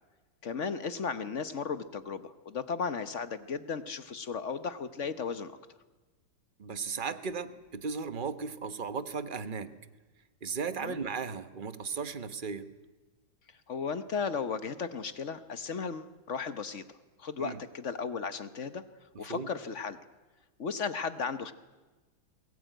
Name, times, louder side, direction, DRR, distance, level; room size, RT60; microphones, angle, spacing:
voice 1, 0.4-5.5 10.8-11.0 13.7-16.8 17.2-18.8 19.2-20.0 20.6-21.5, left 5 dB, 45° left, 11 dB, 1.1 m, -35 dB
voice 2, 6.6-9.8 10.4-12.7 17.4-17.6 19.3-19.5, right 5 dB, 35° right, 11 dB, 0.9 m, -36 dB
22.5 x 19.0 x 9.1 m, 1.3 s
omnidirectional pair, 2.1 m